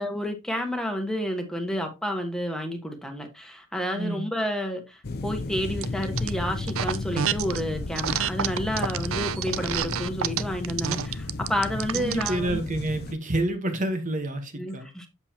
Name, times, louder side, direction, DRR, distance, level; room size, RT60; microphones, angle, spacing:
voice 1, 0.0-12.6 14.6-15.1, equal, 5° left, 1.3 m, -30 dB
voice 2, 3.9-4.2 11.9-15.1, right 1 dB, 40° right, 1.2 m, -29 dB
sound 1, 5.0-13.1, left 2 dB, 50° left, 0.7 m, -33 dB
sound 2, 5.8-6.3 6.7-7.6 7.9-12.4, right 9 dB, 80° right, 0.5 m, -28 dB
8.1 x 7.0 x 2.8 m
head